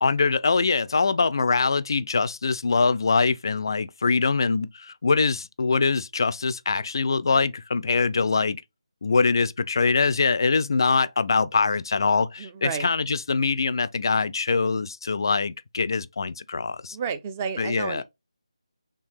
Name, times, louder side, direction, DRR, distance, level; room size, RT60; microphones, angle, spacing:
voice 1, 0.0-8.6 9.0-17.0 17.6-18.0, left 4 dB, 45° left, 0.3 m, -23 dB
voice 2, 12.4-12.9 16.9-18.0, right 6 dB, 20° right, 0.4 m, -31 dB
4.4 x 3.3 x 3.0 m
figure-of-eight pair, 155°, 3 cm